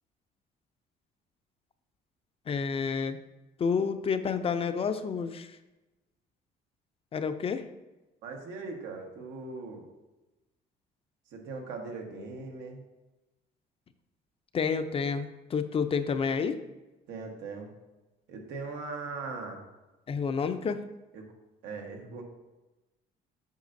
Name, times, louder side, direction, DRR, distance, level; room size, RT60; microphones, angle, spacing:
voice 1, 2.5-3.2 3.6-5.5 7.1-7.6 14.5-16.6 20.1-20.8, left 6 dB, 35° left, 10 dB, 0.5 m, -29 dB
voice 2, 8.2-9.9 11.3-12.8 17.1-17.7 18.3-19.6 21.1-21.3 21.6-22.2, right 3 dB, 90° right, 2 dB, 1.4 m, -39 dB
8.1 x 6.6 x 2.6 m, 1.1 s
cardioid pair, 110°, 17 cm